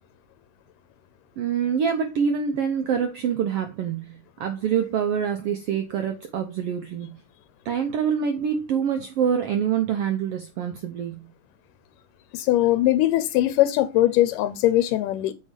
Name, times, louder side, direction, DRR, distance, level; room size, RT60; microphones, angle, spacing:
voice 1, 1.4-7.2 7.6-11.2, right 7 dB, 90° right, 1.3 m, -26 dB
voice 2, 12.3-15.3, left 14 dB, 85° left, 2.2 m, -21 dB
6.9 x 4.6 x 4.9 m
omnidirectional pair, 3.7 m